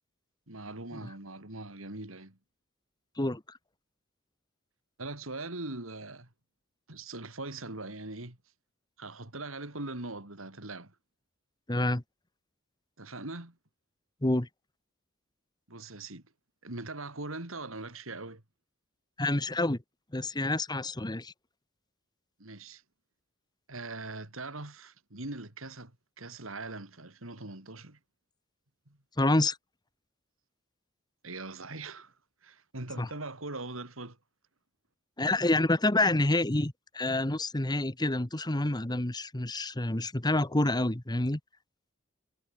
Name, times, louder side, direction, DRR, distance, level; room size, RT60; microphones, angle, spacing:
voice 1, 0.5-2.4 5.0-6.3 6.9-8.4 9.0-10.9 13.0-13.6 15.7-16.2 16.6-18.4 22.4-22.8 23.7-28.0 28.9-29.0 31.2-32.1 32.4-34.2, right 2 dB, 85° right, 3.8 m, -41 dB
voice 2, 11.7-12.0 14.2-14.5 19.2-19.8 20.1-21.3 29.2-29.6 33.0-33.1 35.2-41.4, left 2 dB, 20° left, 1.4 m, -28 dB
head